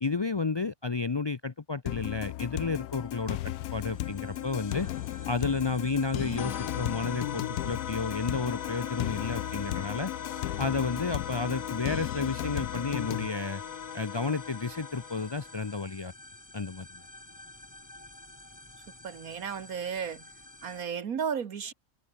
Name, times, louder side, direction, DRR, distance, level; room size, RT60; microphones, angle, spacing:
voice 1, 0.0-4.9 5.3-10.1 10.6-13.6 13.9-16.1 16.5-17.0, left 4 dB, 40° left, 0.3 m, -32 dB
sound 1, 1.9-13.3, left 14 dB, 75° left, 1.1 m, -35 dB
sound 2, 2.9-20.8, left 1 dB, 10° left, 1.7 m, -51 dB
sound 3, 6.4-15.8, left 8 dB, 60° left, 1.4 m, -39 dB
voice 2, 19.0-20.3 20.6-21.7, right 7 dB, 65° right, 1.7 m, -34 dB
omnidirectional pair, 1.6 m